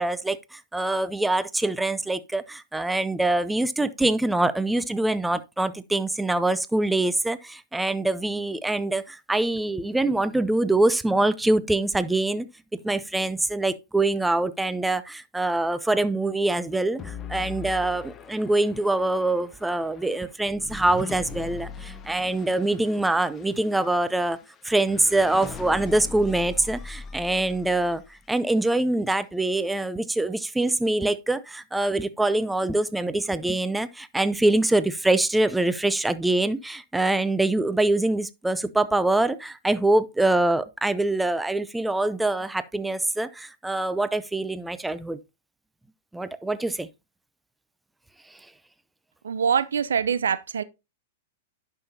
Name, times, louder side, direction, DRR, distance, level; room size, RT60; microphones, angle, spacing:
voice 1, 0.0-12.5 12.8-24.4 24.6-28.0 28.3-45.2 46.1-46.9, right 2 dB, 5° right, 0.5 m, -24 dB
sound 1, 17.0-28.3, left 6 dB, 25° left, 0.8 m, -41 dB
voice 2, 49.2-50.6, right 7 dB, 85° right, 0.6 m, -24 dB
11.0 x 5.6 x 2.7 m
hypercardioid pair, 120°, 0 cm